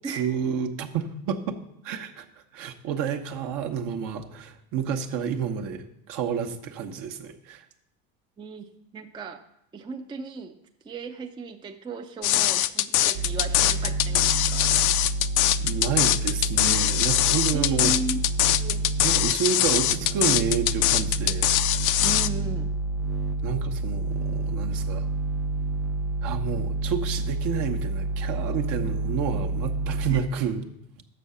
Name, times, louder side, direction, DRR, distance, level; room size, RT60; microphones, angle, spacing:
voice 1, 0.1-1.6 1.8-2.2 2.5-7.6 15.6-18.0 19.0-21.5 23.4-25.1 26.2-30.6, right 7 dB, 55° right, 4 dB, 1.0 m, -30 dB
voice 2, 8.4-9.4 9.7-10.6 10.8-14.7 17.5-18.2 18.6-18.9 22.0-22.7 30.1-30.2, right 4 dB, 10° right, 5 dB, 0.4 m, -36 dB
sound 1, 12.2-22.3, left 14 dB, 55° left, 0.5 m, -22 dB
sound 2, 13.1-19.3 19.6-30.2, right 2 dB, 75° right, 0.6 m, -29 dB
6.5 x 6.2 x 6.9 m, 0.78 s
supercardioid pair, 105°, 38 cm